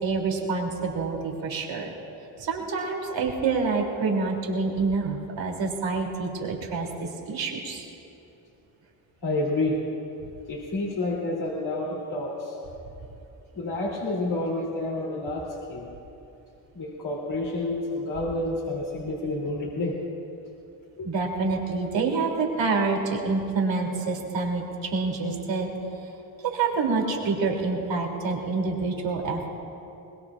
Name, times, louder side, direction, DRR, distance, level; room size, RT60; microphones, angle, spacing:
voice 1, 0.0-1.9 2.4-7.9 21.0-25.7 26.4-29.5, right 4 dB, 65° right, 0 dB, 3.1 m, -27 dB
voice 2, 9.2-9.8 10.5-12.6 13.5-15.9 16.7-20.0 21.0-21.1, left 2 dB, 55° left, -4 dB, 3.1 m, -29 dB
23.0 x 21.0 x 2.5 m, 2.9 s
hypercardioid pair, 45°, 49 cm